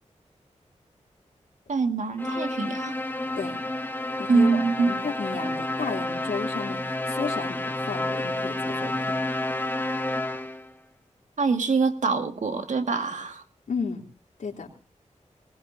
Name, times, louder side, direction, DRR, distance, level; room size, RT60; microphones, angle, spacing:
voice 1, 1.7-2.9 4.3-4.9 11.4-13.4, right 4 dB, 70° right, 6 dB, 1.9 m, -24 dB
sound 1, 2.2-10.7, left 1 dB, 15° left, 1.2 m, -30 dB
voice 2, 4.2-9.2 13.7-14.0 14.4-14.7, left 5 dB, 85° left, -1 dB, 3.2 m, -33 dB
21.5 x 19.5 x 2.7 m, 0.38 s
wide cardioid pair, 100°, 13 cm